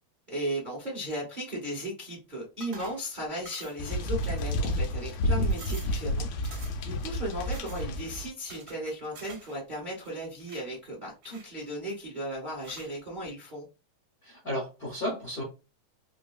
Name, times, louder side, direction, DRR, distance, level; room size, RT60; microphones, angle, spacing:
voice 1, 0.3-6.2 6.8-13.7, right 1 dB, 50° right, 0.5 m, -36 dB
sound 1, 2.6-3.1 3.5-3.9 4.2-4.8 5.2-5.3 5.5-6.0 6.4-6.9 7.5-7.9 8.5-9.6 9.8-10.7 11.2-11.9 12.6-13.0, right 4 dB, 90° right, 0.8 m, -48 dB
sound 2, 3.8-8.3, left 1 dB, 80° left, 1.5 m, -30 dB
voice 2, 14.2-15.4, left 1 dB, 60° left, 0.9 m, -33 dB
4.4 x 2.7 x 2.3 m
omnidirectional pair, 3.4 m